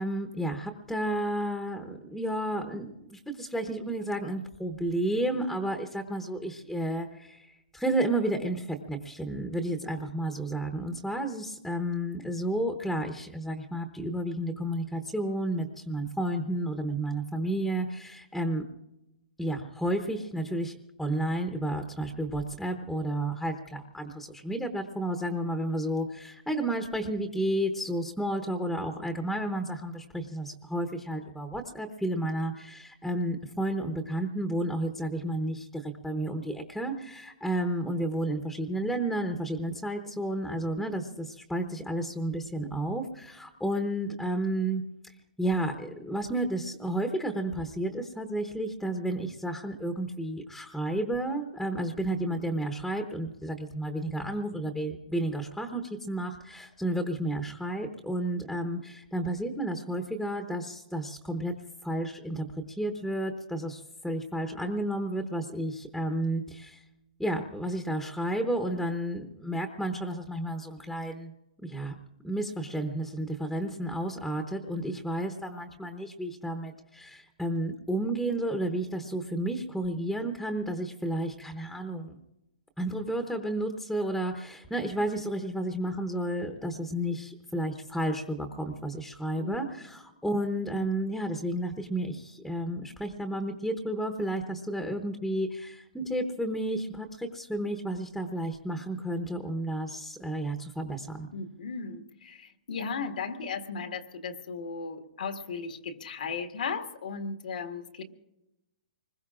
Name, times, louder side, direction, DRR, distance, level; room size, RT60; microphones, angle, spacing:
voice 1, 0.0-18.6 19.4-44.8 45.4-61.5 61.8-66.8 67.2-71.3 71.6-72.0 72.2-82.2 82.8-101.3, right 1 dB, ahead, 5 dB, 0.9 m, -32 dB
voice 2, 89.4-89.7 101.3-108.0, left 5 dB, 80° left, 6 dB, 1.7 m, -36 dB
25.0 x 21.0 x 2.5 m, 0.91 s
hypercardioid pair, 150°, 5 cm